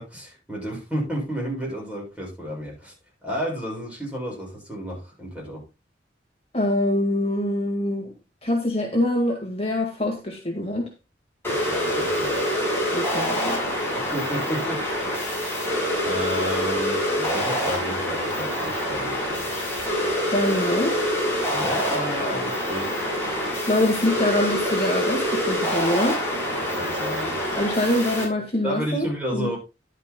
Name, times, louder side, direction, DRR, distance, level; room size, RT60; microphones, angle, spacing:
voice 1, 0.0-2.9 3.2-5.6 11.5-12.5 14.1-14.8 16.0-19.5 21.5-23.0 26.7-27.4 28.6-29.6, equal, 10° right, -3 dB, 7.2 m, -32 dB
voice 2, 6.5-8.1 8.4-10.9 12.9-13.6 20.3-21.0 23.7-26.2 27.6-29.5, left 1 dB, 35° left, 2 dB, 1.7 m, -24 dB
sound 1, 11.4-28.2, equal, 15° left, 6.7 m, -26 dB
12.5 x 11.0 x 2.2 m, 0.28 s
head